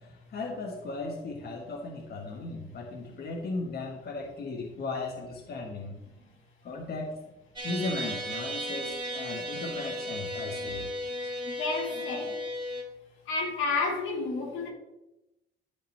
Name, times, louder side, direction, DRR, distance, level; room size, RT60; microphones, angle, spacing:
voice 1, 0.3-6.0 6.6-7.1 7.6-10.9 12.1-12.4, left 3 dB, 55° left, 1 dB, 1.4 m, -36 dB
sound 1, 7.6-12.8, equal, 25° right, 2.8 m, -35 dB
voice 2, 11.4-12.3 13.3-14.7, left 3 dB, 85° left, 0 dB, 2.3 m, -30 dB
12.0 x 5.8 x 3.3 m, 0.96 s
cardioid pair, 90°, 20 cm